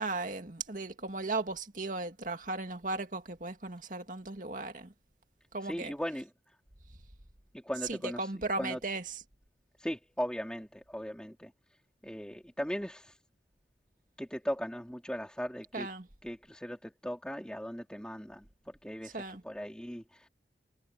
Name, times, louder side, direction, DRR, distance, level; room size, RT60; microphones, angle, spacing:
voice 1, 0.0-4.9 5.5-5.9 7.9-9.2 15.7-16.1 19.1-19.4, right 3 dB, 50° right, 2.1 m, -36 dB
voice 2, 5.7-6.3 7.5-8.3 8.6-8.8 9.8-11.5 12.0-13.2 14.2-15.9 16.2-20.3, equal, 5° left, 3.3 m, -38 dB
head